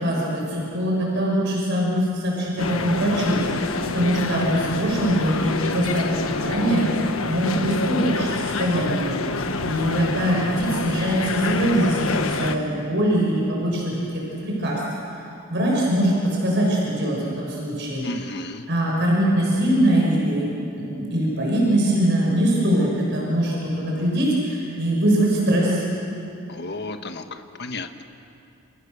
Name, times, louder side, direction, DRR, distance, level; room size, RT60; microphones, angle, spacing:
voice 1, 0.0-6.1 6.4-9.1 9.6-14.8 15.5-18.0 18.7-25.8, right 1 dB, 55° right, -3 dB, 6.3 m, -22 dB
sound 1, 2.6-12.6, left 3 dB, 90° left, 1.5 m, -27 dB
voice 2, 18.0-18.6 26.5-28.0, left 2 dB, 55° left, 7 dB, 1.4 m, -33 dB
29.5 x 29.0 x 6.9 m, 2.7 s
head